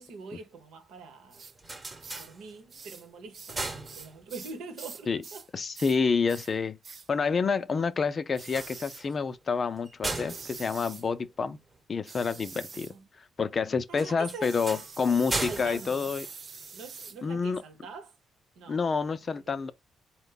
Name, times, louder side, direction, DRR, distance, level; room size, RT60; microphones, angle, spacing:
voice 1, 0.0-1.4 2.2-5.5 12.7-13.1 13.9-14.6 15.4-16.1 16.7-18.2 18.5-18.8 19.4-19.7, right 4 dB, 85° right, 1.1 m, -44 dB
sound 1, 1.3-2.9 3.3-4.6 8.4-11.8 13.9-17.0, right 2 dB, 25° right, 1.0 m, -38 dB
sound 2, 1.3-1.5 2.0-2.3 2.7-3.1 3.3-5.5 5.7-6.0 6.3-6.5 6.8-7.1 8.3-9.1 10.3-11.1 12.0-12.9 14.4-17.2, right 5 dB, 45° right, 0.5 m, -45 dB
voice 2, 5.5-6.8 7.1-11.6 11.9-12.9 13.4-16.3 17.2-17.6 18.7-19.7, left 5 dB, 40° left, 0.5 m, -28 dB
4.4 x 2.2 x 3.8 m
cardioid pair, 90°, 0 cm